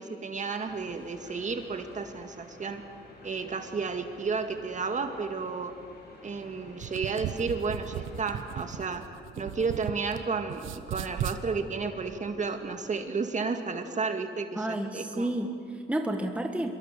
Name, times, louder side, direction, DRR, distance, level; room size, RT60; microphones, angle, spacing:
voice 1, 0.0-2.8 3.2-5.7 6.2-9.0 9.4-15.3, right 4 dB, 35° right, 6 dB, 2.1 m, -32 dB
sound 1, 0.7-8.8, left 2 dB, 55° left, 6.5 m, -52 dB
sound 2, 6.7-10.2 10.5-11.4, right 10 dB, 85° right, 1.0 m, -36 dB
voice 2, 14.6-16.7, right 1 dB, 5° right, 4 dB, 1.5 m, -31 dB
25.0 x 22.5 x 6.8 m, 2.4 s
cardioid pair, 90°, 20 cm